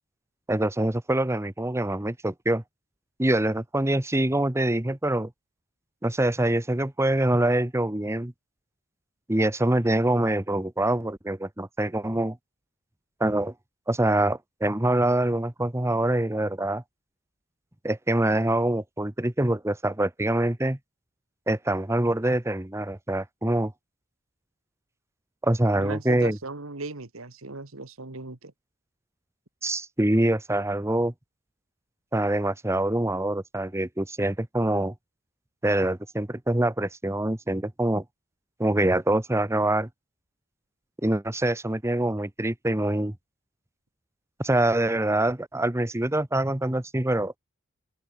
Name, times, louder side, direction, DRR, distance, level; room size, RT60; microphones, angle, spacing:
voice 1, 0.5-2.6 3.2-5.3 6.0-8.3 9.3-12.4 13.2-13.5 13.9-16.8 17.8-20.8 21.5-23.7 25.4-26.4 29.6-31.1 32.1-34.9 35.6-38.0 38.6-39.9 41.0-43.1 44.4-47.3, right 1 dB, 15° right, 1.0 m, -25 dB
voice 2, 25.7-28.5, right 3 dB, 70° right, 1.9 m, -37 dB
open air
head